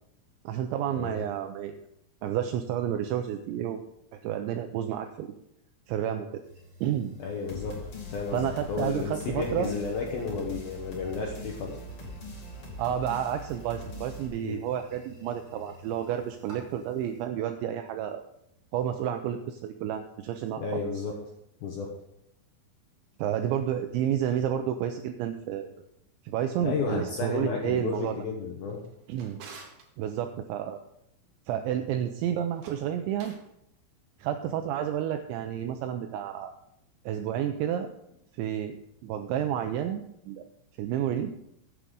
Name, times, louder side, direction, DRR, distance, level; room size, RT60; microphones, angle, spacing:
voice 1, 0.5-1.8 2.2-3.8 4.2-5.3 5.9-6.3 6.8-7.1 8.3-9.7 12.8-18.2 18.7-20.8 23.2-25.7 26.2-28.2 29.1-29.4 30.0-30.8 31.5-33.3 34.2-36.5 37.1-37.9 38.3-38.8 39.0-40.4 40.8-41.3, right 10 dB, 90° right, 7 dB, 2.6 m, -30 dB
sound 1, 6.4-17.2, left 1 dB, 30° right, 4.8 m, -53 dB
voice 2, 7.2-7.8 8.1-11.8 14.4-14.6 20.6-21.2 21.6-21.9 26.6-28.8, left 4 dB, 75° left, 0 dB, 2.2 m, -32 dB
sound 2, 7.5-14.3, left 1 dB, 35° left, 2.6 m, -41 dB
Drawer open or close, 28.7-29.9 32.5-33.5, right 4 dB, 60° right, 3.1 m, -49 dB
15.0 x 8.2 x 3.8 m, 0.78 s
omnidirectional pair, 5.9 m